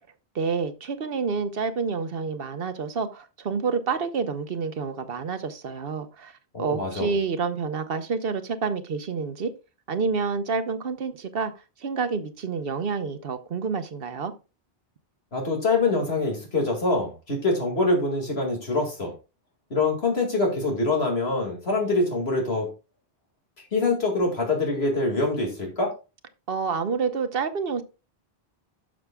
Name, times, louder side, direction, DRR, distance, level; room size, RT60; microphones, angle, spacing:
voice 1, 0.3-9.5 9.9-11.5 11.8-14.3 26.5-27.8, right 5 dB, 65° right, 1.1 m, -28 dB
voice 2, 6.5-7.1 15.3-19.1 19.7-22.7 23.7-25.9, left 2 dB, 75° left, 2.3 m, -24 dB
12.5 x 6.5 x 2.2 m
omnidirectional pair, 1.1 m